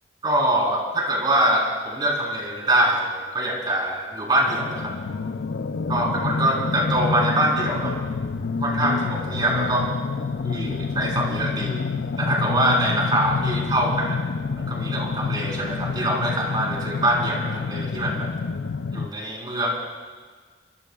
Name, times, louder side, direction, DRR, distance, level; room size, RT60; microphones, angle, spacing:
voice 1, 0.2-5.0 5.9-8.0 8.6-9.9 10.4-11.8 12.2-14.2 14.6-18.3 18.9-19.7, right 1 dB, 25° right, -2 dB, 4.1 m, -24 dB
sound 1, 4.4-19.1, left 4 dB, 80° left, 0.5 m, -28 dB
25.5 x 24.0 x 2.4 m, 1.5 s
head